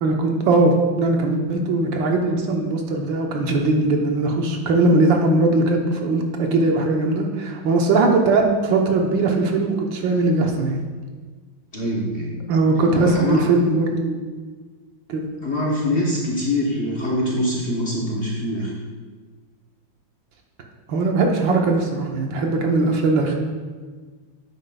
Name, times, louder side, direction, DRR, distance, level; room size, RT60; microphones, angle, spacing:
voice 1, 0.0-10.8 12.5-14.2 15.1-15.3 20.9-23.4, right 2 dB, 70° right, 2 dB, 1.5 m, -20 dB
voice 2, 11.7-12.3 13.0-13.4 15.4-18.7, left 1 dB, 40° left, -4 dB, 1.1 m, -24 dB
10.0 x 8.3 x 2.3 m, 1.4 s
omnidirectional pair, 2.2 m